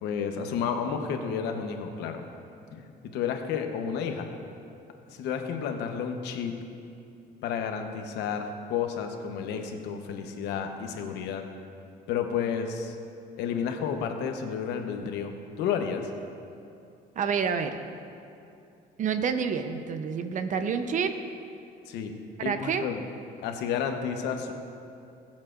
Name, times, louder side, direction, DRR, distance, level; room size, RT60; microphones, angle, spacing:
voice 1, 0.0-2.3 2.7-4.3 5.1-6.5 7.4-11.4 12.1-13.0 13.4-16.1 21.9-22.1 22.4-23.0 23.4-24.5, left 7 dB, 90° left, 5 dB, 1.0 m, -31 dB
voice 2, 17.2-17.8 19.0-21.2 22.4-22.9, right 6 dB, 50° right, 8 dB, 0.7 m, -28 dB
20.5 x 7.5 x 2.5 m, 2.6 s
cardioid pair, 110°, 17 cm